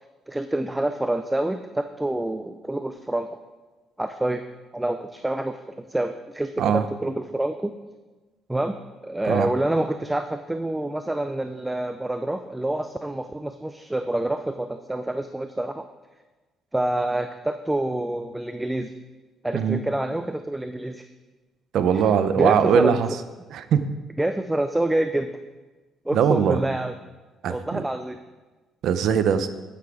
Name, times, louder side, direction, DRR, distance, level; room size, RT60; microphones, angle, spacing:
voice 1, 0.3-3.4 4.0-4.4 4.7-7.7 8.5-15.9 16.7-18.9 19.4-21.0 21.9-22.1 22.4-23.0 24.2-25.3 26.1-26.9 27.5-28.2, right 1 dB, 5° right, 8 dB, 0.3 m, -27 dB
voice 2, 21.7-23.1 23.5-23.9 26.1-26.6 27.4-27.8 28.8-29.5, right 8 dB, 60° right, 11 dB, 0.6 m, -21 dB
8.3 x 8.1 x 4.9 m, 1.2 s
cardioid pair, 155°, 0 cm